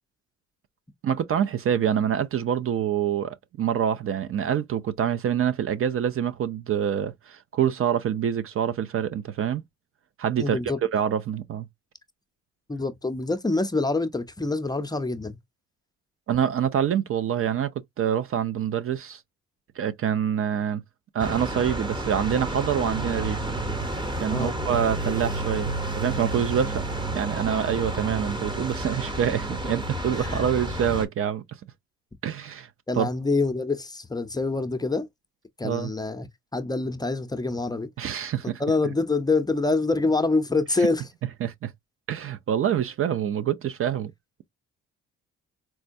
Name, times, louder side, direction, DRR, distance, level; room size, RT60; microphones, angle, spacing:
voice 1, 1.0-9.6 10.2-10.6 10.9-11.7 16.3-19.2 19.8-20.8 21.1-23.4 24.2-26.8 27.1-31.6 32.2-32.7 33.0-33.1 35.6-35.9 38.0-38.6 40.8-40.9 41.4-41.7 42.1-44.1, right 9 dB, 45° right, 0.4 m, -26 dB
voice 2, 10.4-10.8 12.7-15.4 24.3-24.6 30.1-30.4 32.9-35.1 35.6-36.3 36.5-37.9 38.4-41.0, left 3 dB, 15° left, 0.5 m, -26 dB
sound 1, 21.2-31.1, right 1 dB, 15° right, 0.8 m, -30 dB
4.4 x 2.1 x 2.5 m
cardioid pair, 90°, 30 cm